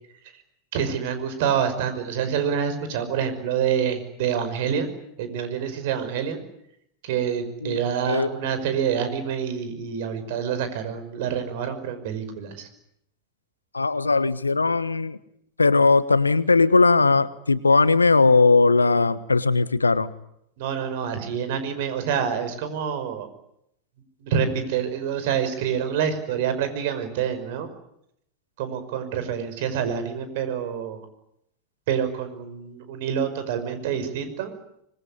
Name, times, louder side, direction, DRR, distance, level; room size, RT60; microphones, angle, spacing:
voice 1, 0.7-4.9 5.2-6.4 7.0-12.7 20.6-23.3 24.2-27.7 28.6-31.1 31.9-34.5, right 8 dB, 55° right, 10 dB, 5.5 m, -27 dB
voice 2, 13.7-15.2 15.6-20.1, left 3 dB, 85° left, 16 dB, 1.2 m, -19 dB
25.5 x 21.0 x 9.8 m, 0.77 s
figure-of-eight pair, 90°, 0 cm